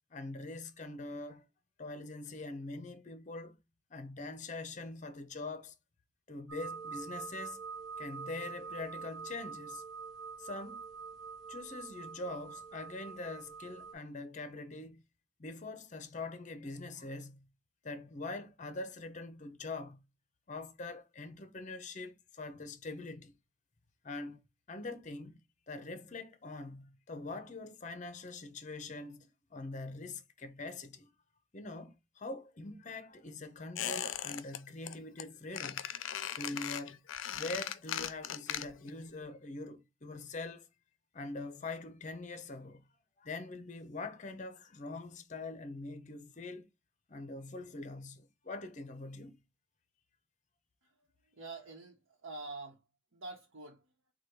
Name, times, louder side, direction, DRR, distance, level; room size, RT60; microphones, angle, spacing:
voice 1, 0.1-1.5 1.8-3.6 3.9-5.7 6.3-7.6 8.0-9.8 10.4-10.8 11.5-15.0 15.4-17.5 17.8-20.0 20.5-23.3 24.0-24.4 24.7-25.4 25.7-31.1 31.5-35.9 36.3-37.0 37.3-40.7 41.1-42.8 43.2-46.7 47.1-49.4, left 2 dB, 40° left, 0.6 m, -43 dB
sound 1, 6.5-13.9, right 5 dB, ahead, 1.4 m, -45 dB
Squeak, 33.8-34.6 34.9-35.2 35.5-39.0 39.2-39.3, left 10 dB, 80° left, 0.4 m, -38 dB
voice 2, 51.3-52.8 53.1-53.9, right 3 dB, 85° right, 1.0 m, -46 dB
4.8 x 2.3 x 4.5 m
head